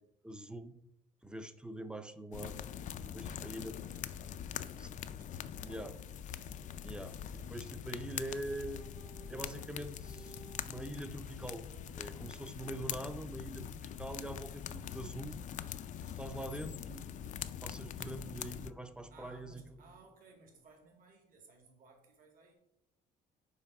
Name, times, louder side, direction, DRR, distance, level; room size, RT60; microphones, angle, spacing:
voice 1, 0.2-0.7 1.2-2.6 3.0-3.7 4.8-4.9 5.6-6.0 6.8-8.8 9.3-10.4 10.6-15.4 16.2-17.1 17.6-19.6, right 1 dB, 5° right, 11 dB, 0.5 m, -44 dB
sound 1, 2.3-18.7, left 9 dB, 50° left, 0.4 m, -43 dB
voice 2, 2.9-6.1 17.6-18.3 19.1-22.5, right 3 dB, 55° right, 3 dB, 1.9 m, -62 dB
sound 2, 5.6-12.9, right 6 dB, 90° right, 0.5 m, -60 dB
sound 3, 16.2-20.9, right 3 dB, 30° right, 1.4 m, -65 dB
5.6 x 4.2 x 5.9 m, 0.83 s
cardioid pair, 110°, 17 cm